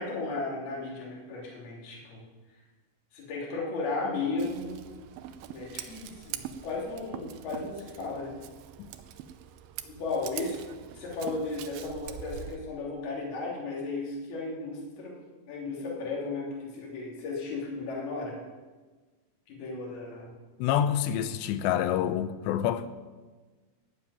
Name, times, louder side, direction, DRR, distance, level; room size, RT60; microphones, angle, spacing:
voice 1, 0.0-2.2 3.1-4.9 5.5-8.4 9.8-10.6 11.0-15.2 15.5-18.4 19.5-20.3, left 3 dB, 65° left, 4.8 m, -35 dB
Scissors, 4.4-12.6, right 10 dB, 75° right, 2.4 m, -43 dB
voice 2, 20.6-22.9, left 10 dB, 90° left, 3.0 m, -27 dB
14.5 x 7.2 x 9.6 m
omnidirectional pair, 4.9 m